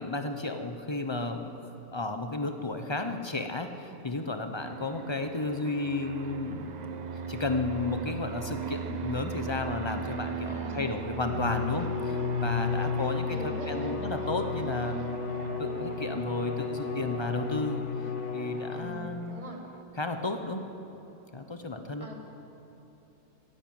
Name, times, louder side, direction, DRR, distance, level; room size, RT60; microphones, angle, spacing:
voice 1, 0.0-7.0 7.3-15.1 15.6-17.8 18.3-19.4 19.9-20.6 21.3-22.1, left 2 dB, 30° left, 7 dB, 0.5 m, -33 dB
Fixed-wing aircraft airplane, 4.6-19.8, right 6 dB, 70° right, 0.4 m, -39 dB
voice 2, 10.4-10.9 13.3-14.0 18.7-19.6 22.0-22.1, left 2 dB, 20° right, 1 dB, 1.8 m, -42 dB
Bowed string instrument, 11.1-19.4, left 6 dB, 85° left, 1.3 m, -33 dB
15.5 x 11.0 x 8.7 m, 2.9 s
omnidirectional pair, 1.6 m